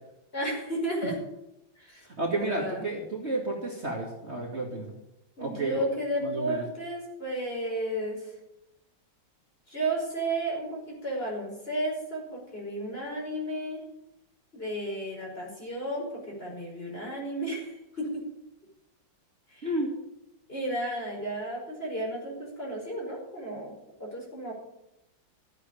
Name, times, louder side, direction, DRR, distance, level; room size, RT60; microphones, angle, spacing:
voice 1, 0.3-1.2 1.8-2.0 2.4-2.8 5.4-8.3 9.7-13.8 14.5-18.2 19.5-19.7 20.5-23.7 24.0-24.5, right 1 dB, 30° left, -2 dB, 5.5 m, -33 dB
voice 2, 2.0-5.0 5.4-5.8 6.2-6.6 19.6-19.9, right 2 dB, 35° right, -2 dB, 2.6 m, -31 dB
13.5 x 8.2 x 8.6 m, 0.88 s
omnidirectional pair, 2.2 m